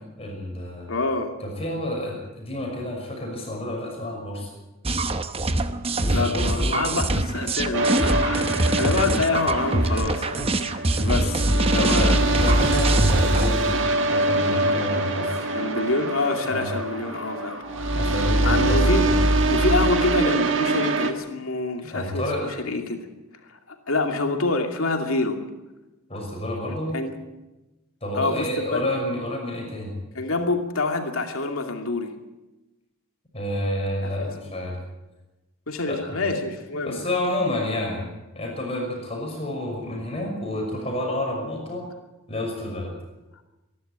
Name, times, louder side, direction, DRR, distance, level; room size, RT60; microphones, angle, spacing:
voice 1, 0.2-0.9 1.4-4.5 5.9-7.0 8.7-9.1 11.0-11.4 11.7-13.8 14.1-15.5 16.4-16.7 17.9-19.0 21.9-22.5 26.1-26.9 28.0-29.9 33.3-34.8 35.8-36.2 36.8-38.1 38.3-41.8 42.3-42.9, left 1 dB, 25° left, 0 dB, 6.0 m, -29 dB
voice 2, 0.9-1.3 6.1-12.2 15.5-17.6 18.4-19.1 19.5-23.1 23.5-25.4 26.9-27.1 28.1-28.8 30.1-32.1 34.0-34.3 35.7-37.1, left 3 dB, 80° left, 4 dB, 2.6 m, -27 dB
sound 1, 4.9-13.5, right 2 dB, 25° right, 0.9 m, -24 dB
sound 2, 7.7-21.1, right 1 dB, 60° right, 1.7 m, -23 dB
sound 3, 11.7-19.8, equal, ahead, 4.3 m, -42 dB
25.0 x 11.5 x 9.1 m, 1.1 s
head